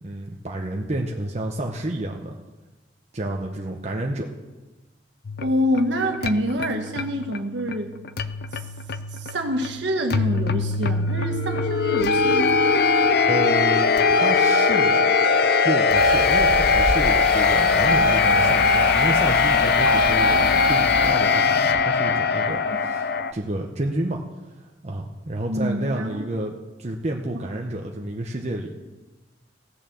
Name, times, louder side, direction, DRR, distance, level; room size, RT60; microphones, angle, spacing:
voice 1, 0.0-2.3 3.1-4.3 13.3-15.0 15.6-24.2 24.8-28.7, right 1 dB, 35° right, 1 dB, 0.8 m, -30 dB
sound 1, 5.2-23.3, left 4 dB, 55° left, 0.5 m, -21 dB
voice 2, 5.4-7.9 8.5-8.6 9.1-12.5 22.6-22.8 25.5-26.3, equal, 70° right, 3 dB, 1.6 m, -26 dB
sound 2, 15.9-21.1, equal, 5° left, 0.8 m, -30 dB
16.5 x 6.3 x 7.0 m, 1.2 s
head